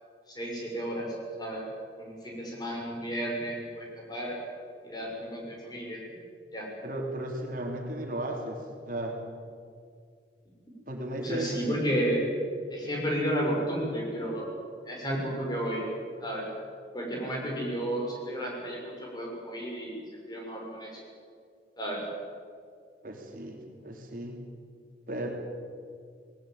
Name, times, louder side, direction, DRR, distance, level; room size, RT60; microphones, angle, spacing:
voice 1, 0.3-1.7 2.0-4.4 4.8-6.0 6.5-6.7 11.2-12.3 12.7-14.5 14.9-15.9 16.2-16.5 16.9-20.0 20.3-21.0 21.8-22.1, equal, 25° left, -2 dB, 6.2 m, -32 dB
voice 2, 6.8-9.1 10.9-11.7 23.0-24.4 25.1-25.3, right 1 dB, 50° right, 1 dB, 3.2 m, -35 dB
19.5 x 19.5 x 9.0 m, 2.2 s
head